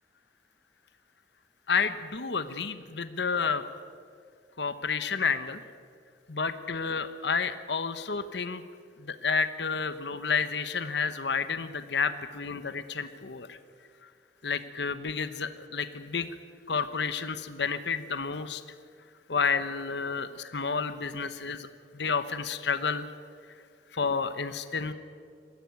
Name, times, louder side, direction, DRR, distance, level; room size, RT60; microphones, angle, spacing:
voice 1, 1.7-3.6 4.6-5.6 6.3-8.6 9.0-13.6 14.4-16.3 16.7-18.6 19.3-21.7 21.9-23.1 23.9-24.9, left 5 dB, 65° left, 11 dB, 1.0 m, -30 dB
21.5 x 15.0 x 9.5 m, 2.3 s
head